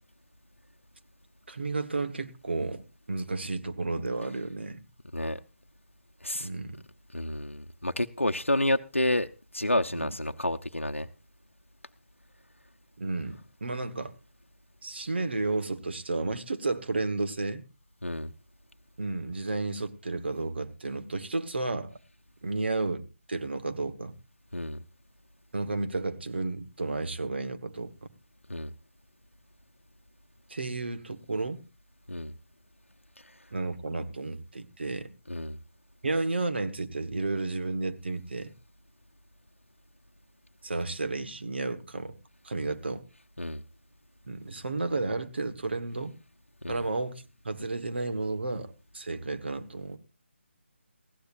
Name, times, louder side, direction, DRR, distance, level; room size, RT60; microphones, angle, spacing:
voice 1, 1.5-4.8 6.4-6.8 9.9-10.1 13.0-14.1 14.8-17.6 19.0-21.9 22.4-24.1 25.5-27.9 30.5-31.6 33.5-35.1 36.0-38.5 40.6-42.2 42.4-43.0 44.3-46.2 46.7-50.0, right 3 dB, 55° right, 1.4 m, -32 dB
voice 2, 7.1-9.3 9.5-11.1 18.0-18.3 24.5-24.8 28.5-28.7 32.1-32.3 35.3-35.6 43.4-43.6 46.6-46.8, left 1 dB, 85° left, 0.8 m, -29 dB
20.0 x 15.5 x 2.6 m
figure-of-eight pair, 150°, 7 cm